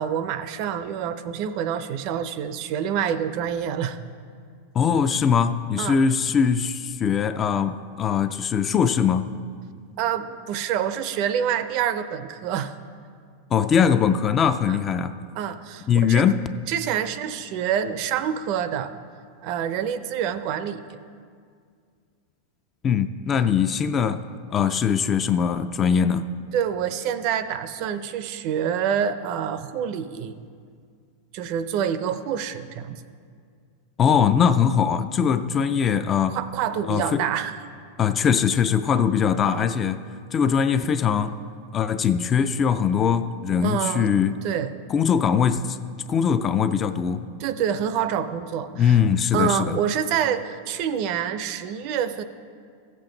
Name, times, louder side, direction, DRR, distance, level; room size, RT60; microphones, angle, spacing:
voice 1, 0.0-4.0 5.8-6.0 10.0-12.7 14.7-14.8 15.4-16.3 16.7-18.9 19.4-21.0 26.5-30.4 31.3-33.0 36.3-37.6 39.5-39.6 43.6-44.2 44.4-44.7 47.4-49.0 49.3-52.2, right 8 dB, 45° right, 0.5 m, -27 dB
voice 2, 4.7-9.3 13.5-15.2 15.9-16.5 22.8-24.2 24.5-26.3 34.0-36.4 36.9-37.3 38.0-40.1 40.3-41.4 41.7-44.5 44.9-45.8 46.1-47.3 48.7-49.8, left 7 dB, 20° left, 0.3 m, -21 dB
14.5 x 7.6 x 3.9 m
supercardioid pair, 150°, 0 cm